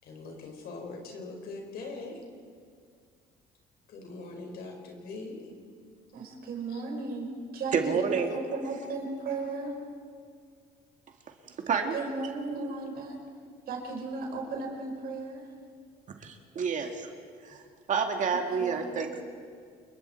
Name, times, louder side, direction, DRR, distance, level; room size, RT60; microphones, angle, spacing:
voice 1, 0.0-2.2 3.9-5.4 6.7-6.8, left 3 dB, 70° left, 1 dB, 5.3 m, -41 dB
voice 2, 6.1-9.8 11.9-13.2 13.7-15.4 18.6-19.0, right 3 dB, 65° right, 1 dB, 5.2 m, -35 dB
voice 3, 7.7-8.3 11.7-11.9 16.2-17.1 17.4-17.6 17.9-19.2, right 6 dB, 50° right, 4 dB, 2.1 m, -29 dB
28.5 x 22.5 x 4.6 m, 2.1 s
cardioid pair, 110°, 17 cm